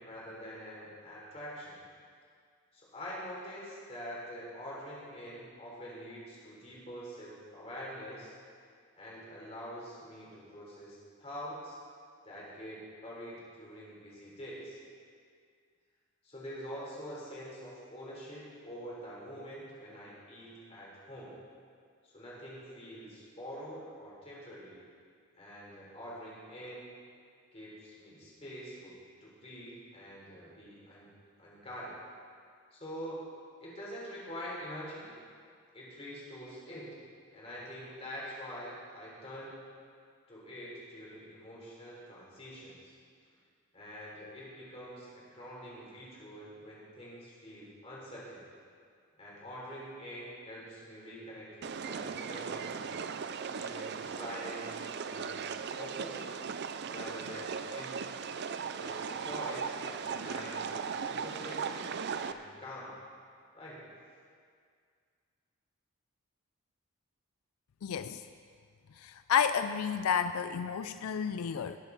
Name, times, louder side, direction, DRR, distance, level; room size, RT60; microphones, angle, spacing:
voice 1, 0.0-1.8 2.7-8.3 9.0-11.8 12.2-14.8 16.2-21.3 22.0-24.8 25.3-26.9 27.5-29.0 29.2-31.1 31.4-32.0 32.7-33.2 33.6-35.1 35.7-37.0 37.3-39.6 40.3-42.9 43.7-48.5 49.2-52.9 53.5-54.8 55.1-56.3 56.9-58.1 58.8-62.9 63.5-63.8, equal, 30° left, -6 dB, 3.6 m, -45 dB
sound 1, 51.6-62.3, right 6 dB, 50° right, 0.4 m, -38 dB
voice 2, 67.8-68.2 69.0-71.8, left 7 dB, 90° left, 10 dB, 0.4 m, -31 dB
19.5 x 7.9 x 4.1 m, 2.1 s
head